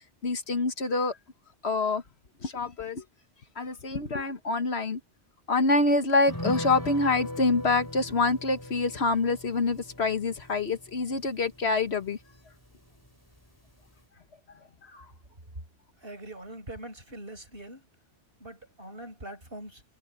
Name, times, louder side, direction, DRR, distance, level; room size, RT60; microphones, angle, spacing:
voice 1, 0.2-1.1 1.6-2.0 2.4-3.0 3.6-5.0 5.5-12.2 14.9-15.1, left 3 dB, 65° left, 1.7 m, -26 dB
sound 1, 6.3-13.1 13.4-13.5 13.8-14.0, left 1 dB, 15° left, 5.3 m, -40 dB
voice 2, 16.0-17.9 18.4-19.8, right 1 dB, 55° right, 7.1 m, -43 dB
omnidirectional pair, 1.2 m